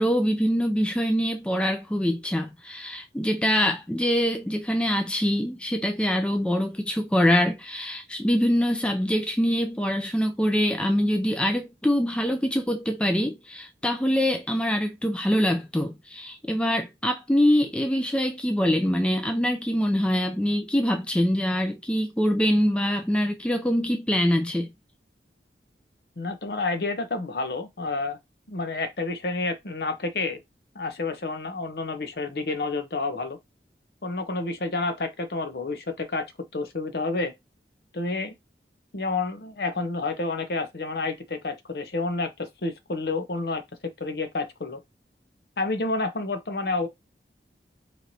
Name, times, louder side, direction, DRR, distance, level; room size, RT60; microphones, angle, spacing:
voice 1, 0.0-24.7, equal, 5° left, 0.4 m, -24 dB
voice 2, 26.2-28.2 28.5-30.4 30.7-33.4 34.0-36.3 36.5-37.3 37.9-38.3 38.9-44.8 45.6-46.9, left 3 dB, 65° left, 0.7 m, -29 dB
4.4 x 3.0 x 2.7 m
head